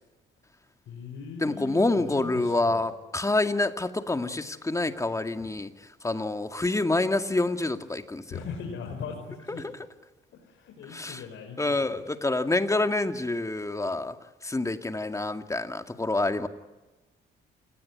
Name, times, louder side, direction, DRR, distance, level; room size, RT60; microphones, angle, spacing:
voice 1, 0.9-2.8 5.4-5.5 8.3-9.6 10.4-12.0, left 6 dB, 75° left, 2 dB, 5.0 m, -40 dB
voice 2, 1.4-5.7 6.0-8.4 9.5-9.7 10.9-11.2 11.6-14.2 14.4-16.5, left 2 dB, 15° left, 7 dB, 2.1 m, -27 dB
28.5 x 19.0 x 9.7 m, 1.1 s
cardioid pair, 90°, 20 cm